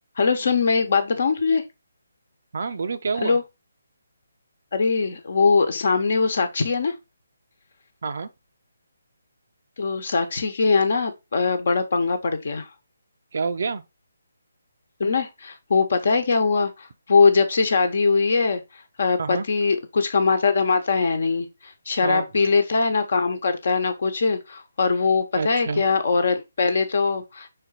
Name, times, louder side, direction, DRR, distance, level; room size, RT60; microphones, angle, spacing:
voice 1, 0.2-1.6 3.2-3.4 4.7-6.9 9.8-12.7 15.0-18.6 19.0-27.5, left 4 dB, 50° left, 1.1 m, -21 dB
voice 2, 2.5-3.4 8.0-8.3 13.3-13.8 19.2-19.4 22.0-22.2 25.4-25.8, right 4 dB, 50° right, 0.6 m, -27 dB
5.6 x 4.3 x 3.9 m
figure-of-eight pair, 145°, 0 cm